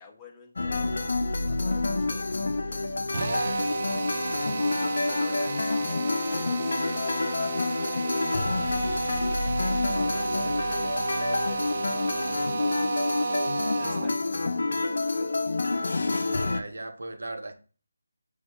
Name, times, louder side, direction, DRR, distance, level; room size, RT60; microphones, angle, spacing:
voice 1, 0.0-4.8 5.1-5.7 6.3-8.5 8.9-13.3 13.7-14.5, left 5 dB, 15° left, 1 dB, 0.5 m, -51 dB
sound 1, 0.6-16.6, left 3 dB, 60° left, 0.4 m, -28 dB
Drill, 3.1-14.1, right 3 dB, 45° right, 0.4 m, -32 dB
voice 2, 15.9-17.5, right 2 dB, 70° right, 7 dB, 0.7 m, -38 dB
6.3 x 2.1 x 2.9 m, 0.38 s
figure-of-eight pair, 160°, 0 cm